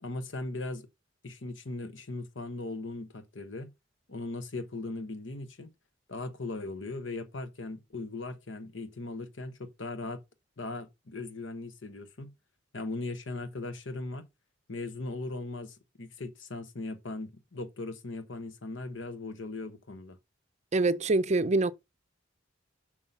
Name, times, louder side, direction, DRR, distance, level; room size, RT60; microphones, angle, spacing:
voice 1, 0.0-0.9 1.2-3.7 4.1-5.7 6.1-10.2 10.6-12.3 12.7-14.3 14.7-20.2, left 2 dB, 75° left, 1.1 m, -38 dB
voice 2, 20.7-21.7, right 2 dB, 35° right, 0.5 m, -25 dB
6.4 x 5.7 x 5.5 m
head